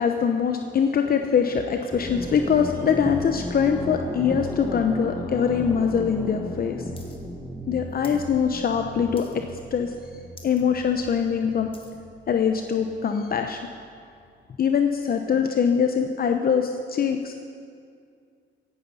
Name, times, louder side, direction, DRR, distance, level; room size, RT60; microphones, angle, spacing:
voice 1, 0.0-6.9 7.7-9.4 9.7-9.9 10.4-11.7 12.3-13.7 14.6-17.4, left 7 dB, 50° left, 5 dB, 0.8 m, -23 dB
sound 1, 1.7-5.0, right 2 dB, 70° right, 3.4 m, -46 dB
sound 2, 1.9-13.4, equal, ahead, 1.4 m, -35 dB
sound 3, 7.0-7.2 7.4-8.3 8.6-8.8 9.2-9.6 10.0-10.1 10.3-10.6 11.1-12.0 12.7-12.8, left 3 dB, 25° left, 2.0 m, -49 dB
16.0 x 11.5 x 5.5 m, 2.3 s
cardioid pair, 90°, 20 cm